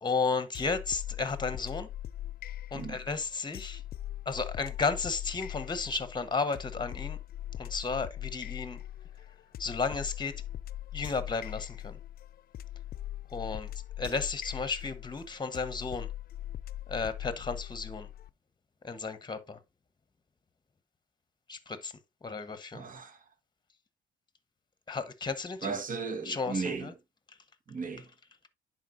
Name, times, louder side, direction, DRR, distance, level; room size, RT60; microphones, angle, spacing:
voice 1, 0.0-1.9 2.7-3.8 4.3-7.2 7.6-8.8 9.6-10.3 10.9-12.0 13.3-13.7 14.0-16.1 16.9-18.1 18.8-19.6 21.5-21.9 22.2-22.8 24.9-25.7 26.2-26.9, left 4 dB, 20° left, 1.0 m, -33 dB
sound 1, 0.5-18.3, left 13 dB, 50° left, 0.4 m, -41 dB
voice 2, 22.7-23.2 25.6-26.9 27.7-28.1, right 4 dB, 45° right, 1.5 m, -36 dB
10.5 x 4.3 x 2.6 m
cardioid pair, 90°, 20 cm